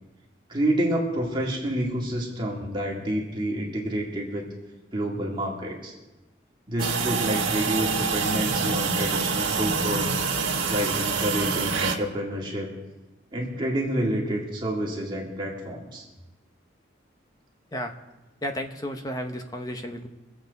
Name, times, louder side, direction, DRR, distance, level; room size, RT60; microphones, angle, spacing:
voice 1, 0.5-4.5 4.9-5.9 6.7-10.2 10.7-12.7 13.3-16.0, right 1 dB, 25° right, -3 dB, 2.0 m, -28 dB
sound 1, 6.8-11.9, right 4 dB, 80° right, 1.5 m, -26 dB
voice 2, 18.4-20.1, equal, 20° left, 5 dB, 0.8 m, -32 dB
23.5 x 8.0 x 4.0 m, 1.1 s
head